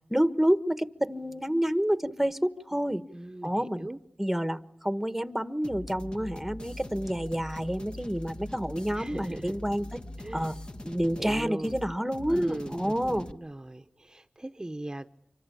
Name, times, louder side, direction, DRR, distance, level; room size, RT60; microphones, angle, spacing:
voice 1, 0.1-3.0 3.4-3.9 4.2-10.0 10.3-10.5 10.8-13.3, equal, 5° right, 12 dB, 1.4 m, -28 dB
voice 2, 3.1-4.0 9.0-9.6 10.2-10.5 11.2-11.7 12.3-15.1, right 1 dB, 25° right, 7 dB, 1.0 m, -39 dB
sound 1, 5.6-13.3, left 1 dB, 35° left, 1.4 m, -42 dB
26.0 x 24.5 x 8.6 m, 0.78 s
cardioid pair, 45°, 3 cm